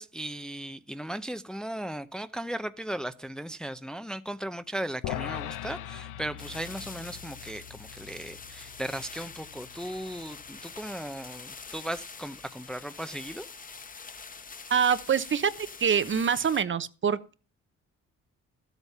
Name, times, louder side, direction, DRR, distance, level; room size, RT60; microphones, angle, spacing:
voice 1, 0.0-13.5, right 1 dB, ahead, 0.6 m, -37 dB
sound 1, 5.0-11.4, left 12 dB, 85° left, 0.8 m, -41 dB
sound 2, 6.4-16.6, left 5 dB, 30° left, 1.0 m, -45 dB
voice 2, 14.7-17.3, right 7 dB, 40° right, 0.9 m, -25 dB
12.5 x 8.2 x 5.5 m
cardioid pair, 90°, 30 cm